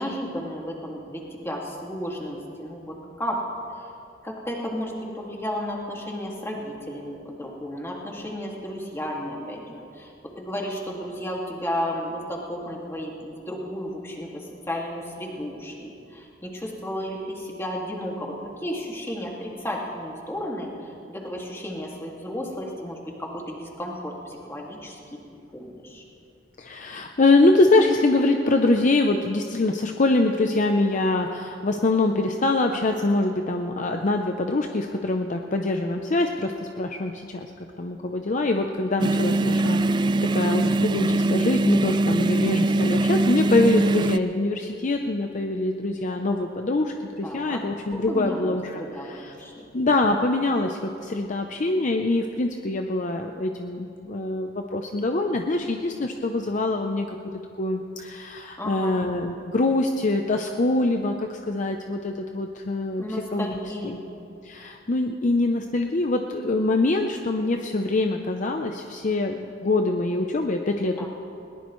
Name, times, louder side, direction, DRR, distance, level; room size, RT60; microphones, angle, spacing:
voice 1, 0.0-3.9 4.2-25.2 25.5-26.0 47.2-47.6 47.9-49.7 58.6-59.0 63.0-64.0 71.0-71.1, equal, 15° left, -2 dB, 2.2 m, -33 dB
voice 2, 26.6-37.5 37.8-49.3 49.7-57.1 57.6-63.6 63.8-64.0 64.4-71.1, left 2 dB, 45° left, 4 dB, 0.6 m, -24 dB
sound 1, 39.0-44.2, right 2 dB, 25° right, 0.3 m, -22 dB
21.0 x 18.5 x 3.2 m, 2.6 s
head